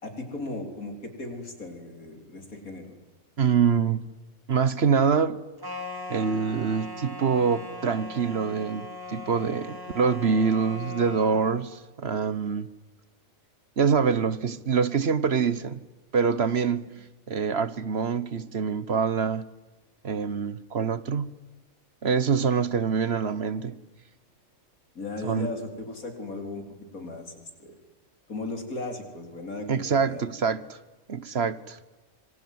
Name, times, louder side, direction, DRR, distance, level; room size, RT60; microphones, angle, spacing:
voice 1, 0.0-2.9 24.9-26.6 26.9-27.7 28.3-30.3, left 2 dB, 90° left, 4.7 m, -36 dB
voice 2, 3.4-4.1 4.5-5.4 6.1-12.7 13.8-15.8 16.1-19.5 20.0-21.3 22.0-23.8 25.2-25.5 29.7-30.8 31.1-31.8, right 6 dB, 50° right, 1.3 m, -25 dB
sound 1, 5.6-11.6, left 2 dB, 15° right, 3.1 m, -39 dB
25.5 x 24.0 x 9.4 m
omnidirectional pair, 1.4 m